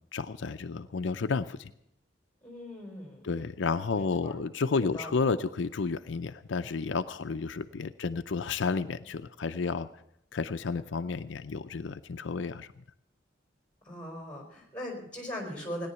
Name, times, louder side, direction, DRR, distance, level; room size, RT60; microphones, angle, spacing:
voice 1, 0.1-1.7 3.2-9.9 10.3-12.8, left 4 dB, 75° left, 9 dB, 0.5 m, -31 dB
voice 2, 2.4-3.3 3.9-4.4 4.9-5.1 13.8-15.9, equal, 5° left, 1 dB, 4.4 m, -40 dB
17.5 x 10.5 x 6.9 m, 0.75 s
head